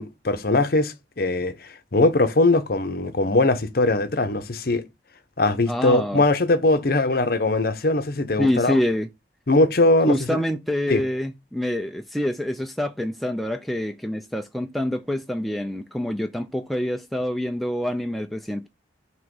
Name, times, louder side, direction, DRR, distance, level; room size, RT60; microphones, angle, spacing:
voice 1, 0.0-4.8 5.4-8.8 9.5-10.4 10.9-11.0, left 2 dB, 55° left, 0.8 m, -21 dB
voice 2, 5.7-6.2 8.4-9.1 10.1-18.7, left 1 dB, ahead, 0.4 m, -26 dB
6.3 x 3.0 x 5.3 m
head